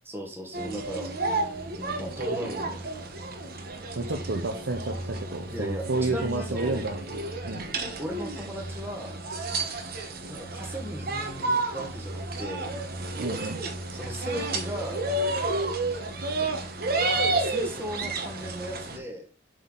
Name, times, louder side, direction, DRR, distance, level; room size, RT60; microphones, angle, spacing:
voice 1, 0.1-1.1 1.7-2.8 5.5-6.8 8.0-9.2 10.3-12.7 13.9-15.0 16.4-16.5 17.1-19.3, equal, 15° right, 1 dB, 1.4 m, -37 dB
sound 1, 0.5-19.0, right 2 dB, 55° right, 1.1 m, -31 dB
voice 2, 4.0-7.0 7.4-7.7 13.2-13.6, right 2 dB, 75° right, 2 dB, 0.8 m, -30 dB
7.7 x 3.8 x 3.9 m, 0.34 s
head